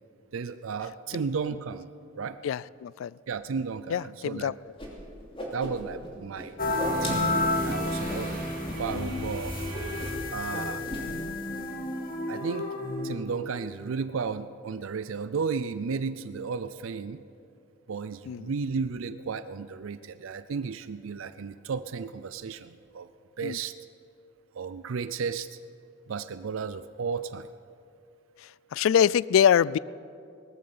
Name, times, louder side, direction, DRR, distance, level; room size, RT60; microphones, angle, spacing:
voice 1, 0.3-2.4 3.3-4.5 5.5-6.5 7.0-8.5 8.8-9.6 10.3-10.8 12.3-12.8 13.0-17.2 17.9-23.1 23.4-23.7 24.5-25.6 26.1-27.5, right 5 dB, 85° right, 0.5 m, -33 dB
voice 2, 2.4-3.1 3.9-4.5 8.9-9.4 18.3-18.5 23.4-23.6 28.7-29.8, left 8 dB, 75° left, 0.3 m, -24 dB
Whoosh swoosh swish, 4.8-4.9 5.2-6.1 6.3-8.2 8.6-9.0 9.2-9.4 9.7-10.2 10.5-11.0, left 1 dB, 30° left, 2.9 m, -37 dB
sound 1, 6.6-13.2, left 2 dB, 45° left, 1.7 m, -31 dB
sound 2, 6.8-10.7, right 1 dB, 45° right, 2.8 m, -39 dB
19.0 x 13.5 x 5.6 m
head